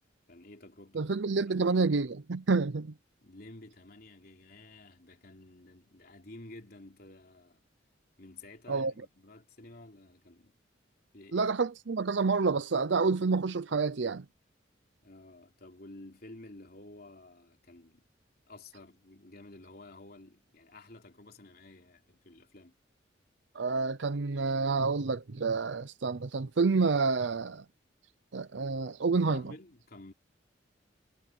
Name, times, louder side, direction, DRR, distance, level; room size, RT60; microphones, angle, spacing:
voice 1, 0.3-1.7 3.2-7.6 8.2-10.6 11.1-11.5 15.0-18.1 18.5-22.8 29.2-30.1, left 2 dB, 50° left, 3.3 m, -52 dB
voice 2, 0.9-2.9 8.7-8.9 11.3-14.2 23.5-27.6 28.3-29.4, right 4 dB, 70° right, 0.6 m, -28 dB
head